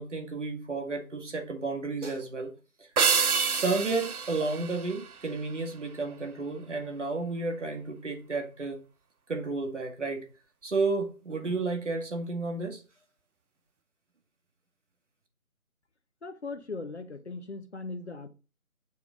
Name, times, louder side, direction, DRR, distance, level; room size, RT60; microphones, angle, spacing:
voice 1, 0.0-2.5 2.8-2.9 3.5-8.8 9.3-10.3 10.6-12.8, right 3 dB, 55° right, 1.9 m, -32 dB
sound 1, 3.0-5.6, right 5 dB, 80° right, 0.8 m, -28 dB
voice 2, 16.2-18.3, left 3 dB, 50° left, 0.8 m, -39 dB
7.0 x 4.7 x 3.8 m
figure-of-eight pair, 160°, 44 cm